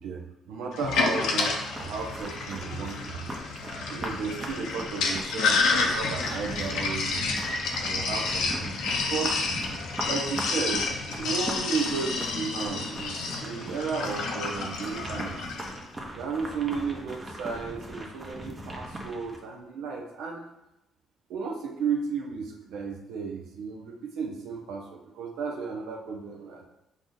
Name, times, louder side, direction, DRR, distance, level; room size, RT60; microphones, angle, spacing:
voice 1, 0.0-3.3 3.9-7.3 7.8-9.5 10.0-15.4 16.1-20.5 21.3-26.7, right 5 dB, 85° right, 1 dB, 0.6 m, -34 dB
Sink (filling or washing), 0.7-15.8, left 4 dB, 85° left, 0.6 m, -30 dB
sound 1, 1.7-19.4, right 1 dB, 25° right, 0.8 m, -39 dB
4.7 x 2.7 x 3.8 m, 0.90 s
cardioid pair, 85°, 0 cm